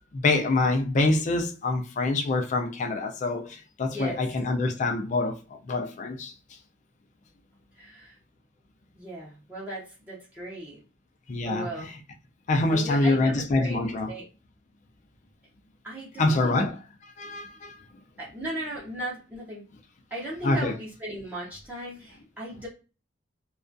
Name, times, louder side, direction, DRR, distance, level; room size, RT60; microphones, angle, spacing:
voice 1, 0.1-6.3 11.3-12.0 12.5-14.1 16.2-16.8 17.2-17.7 20.4-20.7, left 2 dB, 40° left, 0.3 m, -25 dB
voice 2, 7.8-8.2 8.9-10.8 11.4-11.9 12.7-13.8 14.1-14.2 15.8-16.7 18.2-19.6 20.1-22.7, right 1 dB, 10° right, 0.6 m, -37 dB
2.3 x 2.2 x 2.5 m
head